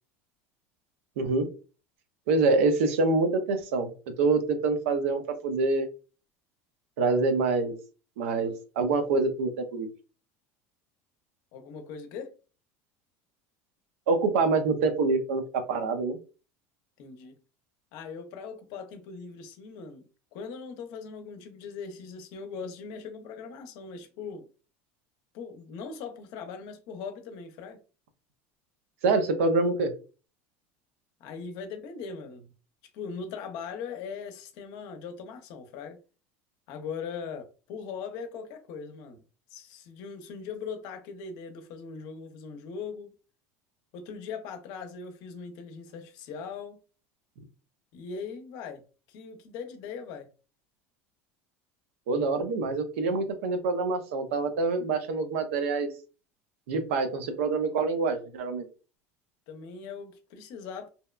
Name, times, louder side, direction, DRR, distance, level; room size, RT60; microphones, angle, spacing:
voice 1, 1.2-1.5 2.3-3.9 4.2-5.9 7.0-7.7 8.2-9.9 14.1-15.4 15.7-16.2 29.0-29.9 52.1-55.9 56.7-58.6, right 3 dB, 80° right, 0.5 m, -26 dB
voice 2, 11.5-12.3 17.0-17.4 17.9-20.0 20.3-24.5 25.3-27.8 31.2-32.5 32.9-36.0 36.7-39.2 39.5-43.1 43.9-46.8 47.9-50.3 59.5-60.9, left 5 dB, 65° left, 0.6 m, -40 dB
2.7 x 2.1 x 2.3 m
supercardioid pair, 100°, 7 cm